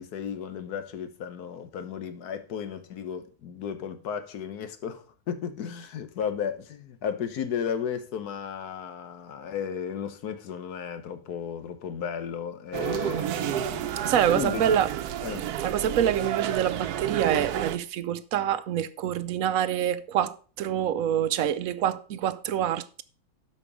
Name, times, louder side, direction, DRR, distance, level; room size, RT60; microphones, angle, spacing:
voice 1, 0.0-14.0 14.3-14.8 15.2-15.5, left 7 dB, 90° left, 1.5 m, -34 dB
sound 1, 12.7-17.8, right 10 dB, 85° right, 1.2 m, -30 dB
voice 2, 14.0-14.9 15.6-23.0, right 10 dB, 70° right, 1.0 m, -26 dB
12.0 x 5.1 x 4.9 m
omnidirectional pair, 1.6 m